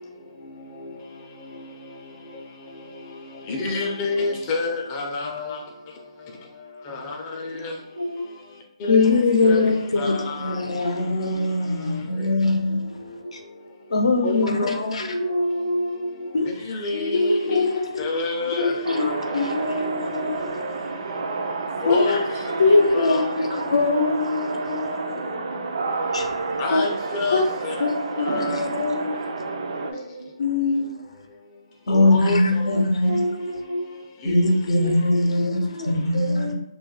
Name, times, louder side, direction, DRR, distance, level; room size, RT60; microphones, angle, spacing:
voice 1, 3.5-5.6 6.9-7.2 7.6-7.7 8.8-9.0 9.4-9.6 10.0-10.4 14.2-14.9 16.7-17.7 18.0-18.7 19.0-19.2 21.8-22.2 22.7-23.2 26.6-27.8 31.9-32.4 34.2-34.3, left 3 dB, 20° left, 0.4 m, -27 dB
voice 2, 7.9-8.3 11.3-12.0 12.7-13.4 15.0-16.3 16.9-18.2 22.5-22.8 25.1-26.0 29.4-30.3 32.0-32.1 32.7-34.0 34.7-36.5, equal, 75° right, 0.7 m, -30 dB
voice 3, 8.9-12.9 13.3-13.4 13.9-15.1 16.3-16.5 17.1-17.9 18.6-20.5 21.9-22.2 22.6-25.2 26.1-26.3 26.7-26.9 27.3-27.5 27.8-29.2 30.4-30.9 31.9-33.2 34.2-36.5, left 3 dB, 75° left, 0.5 m, -22 dB
sound 1, 18.8-29.9, right 3 dB, 55° right, 0.3 m, -30 dB
2.2 x 2.1 x 3.8 m
hypercardioid pair, 155°, 3 cm